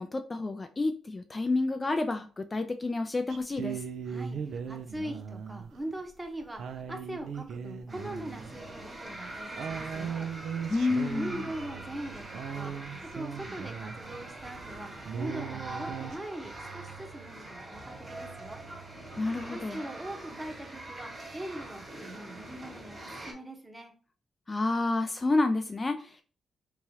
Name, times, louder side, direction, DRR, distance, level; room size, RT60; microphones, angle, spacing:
voice 1, 0.0-3.8 10.7-11.5 19.2-19.8 24.5-26.2, left 2 dB, 30° left, 7 dB, 0.4 m, -29 dB
sound 1, 3.3-14.3 14.7-14.8 15.0-16.2, right 7 dB, 70° right, 0.4 m, -38 dB
voice 2, 4.1-10.3 11.1-14.9 15.1-18.6 19.5-23.9, right 1 dB, 15° right, 3 dB, 0.9 m, -41 dB
sound 2, 7.9-23.3, right 2 dB, 35° right, 1.5 m, -43 dB
3.5 x 3.0 x 2.8 m, 0.39 s
cardioid pair, 65°, 0 cm